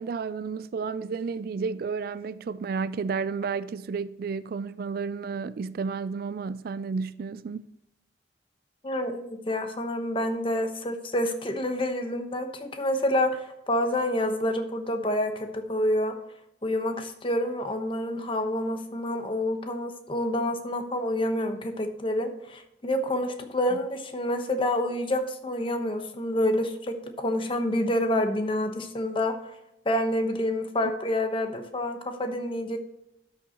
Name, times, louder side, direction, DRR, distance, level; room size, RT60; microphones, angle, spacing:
voice 1, 0.0-7.7, right 5 dB, 55° right, 0.3 m, -32 dB
voice 2, 8.8-16.1 16.6-29.3 29.8-32.8, left 1 dB, 30° left, 1.0 m, -28 dB
11.5 x 6.4 x 2.9 m
head